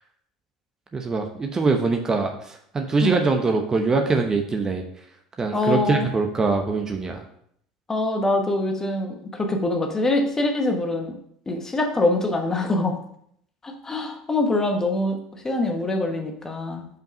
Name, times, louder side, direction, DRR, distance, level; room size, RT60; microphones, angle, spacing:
voice 1, 0.9-4.8 5.4-7.2, right 4 dB, 25° right, 4 dB, 0.9 m, -23 dB
voice 2, 5.5-6.1 7.9-11.2 11.5-12.9 13.6-16.9, left 2 dB, 20° left, 4 dB, 1.2 m, -24 dB
5.3 x 5.2 x 5.2 m, 0.69 s
figure-of-eight pair, 70°, 2 cm